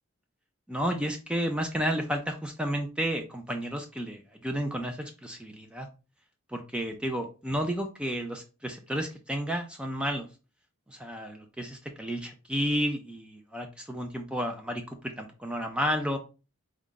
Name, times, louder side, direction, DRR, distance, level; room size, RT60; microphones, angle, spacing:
voice 1, 0.7-5.9 6.5-10.3 10.9-16.2, equal, 5° right, 4 dB, 0.4 m, -32 dB
4.3 x 2.5 x 3.7 m, 0.31 s
head